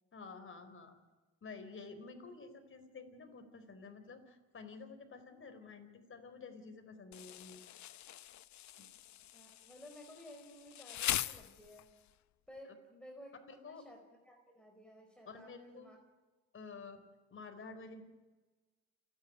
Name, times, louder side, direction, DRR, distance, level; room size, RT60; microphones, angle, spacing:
voice 1, 0.1-1.0 1.4-7.6 8.8-8.9 13.5-13.8 15.3-15.9 16.5-17.0 17.3-18.0, left 4 dB, 45° left, 6 dB, 4.4 m, -51 dB
Insect, 7.1-12.1, left 13 dB, 65° left, 0.8 m, -42 dB
voice 2, 9.3-11.9 12.5-14.0 14.2-16.0, equal, 5° left, 2 dB, 5.0 m, -55 dB
28.5 x 11.0 x 9.6 m, 1.2 s
cardioid pair, 90°, 30 cm